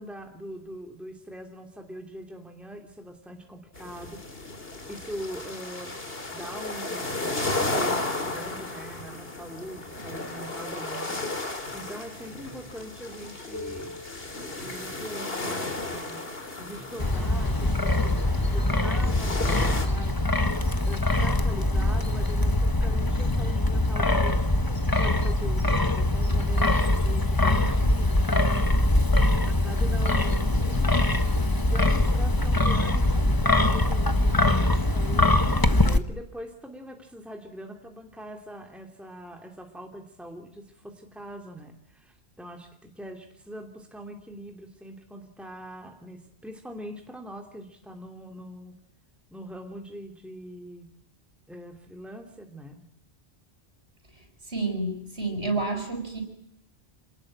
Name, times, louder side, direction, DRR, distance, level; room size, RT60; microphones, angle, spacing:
voice 1, 0.0-4.5 4.9-5.9 6.3-14.0 14.4-16.3 16.6-20.3 20.8-29.2 29.5-31.0 31.7-48.8 49.3-50.9 51.5-52.9, equal, ahead, 3 dB, 3.0 m, -42 dB
sound 1, 3.7-19.9, left 2 dB, 60° left, 3.2 m, -34 dB
sound 2, 10.4-11.2 11.6-20.1, left 2 dB, 85° left, 4.4 m, -47 dB
Wind, 17.0-36.0, left 2 dB, 20° left, 1.3 m, -23 dB
voice 2, 54.5-56.2, right 2 dB, 65° right, 5 dB, 7.0 m, -29 dB
27.5 x 19.5 x 8.8 m, 0.76 s
omnidirectional pair, 1.1 m